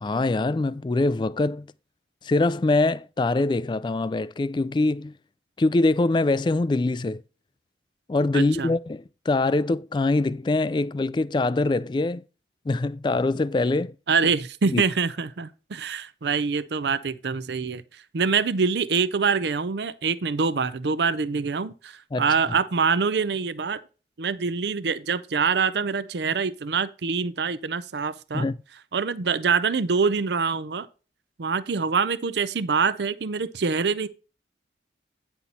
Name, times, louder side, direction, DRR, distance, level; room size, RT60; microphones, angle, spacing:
voice 1, 0.0-1.7 2.2-5.1 5.6-7.2 8.1-12.2 12.7-13.9 14.7-14.8 22.1-22.2 28.3-28.6, left 2 dB, 25° left, 0.3 m, -23 dB
voice 2, 8.3-8.7 14.1-23.8 24.2-28.5 28.9-30.9 31.4-34.1, right 5 dB, 70° right, 0.6 m, -25 dB
9.5 x 5.7 x 4.2 m
head